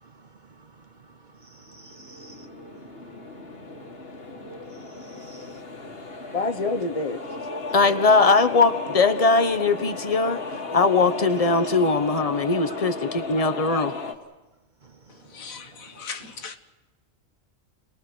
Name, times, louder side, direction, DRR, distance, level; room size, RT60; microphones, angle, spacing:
voice 1, 0.0-3.3 4.5-5.6 14.8-14.9, right 3 dB, 40° right, 0.9 m, -52 dB
sound 1, 1.7-14.1, left 3 dB, 45° left, 2.0 m, -35 dB
voice 2, 6.3-7.2 7.7-10.4 10.7-13.9, left 3 dB, 30° left, 1.1 m, -21 dB
voice 3, 15.1-16.6, left 5 dB, 85° left, 1.8 m, -39 dB
29.5 x 21.0 x 6.3 m
omnidirectional pair, 1.4 m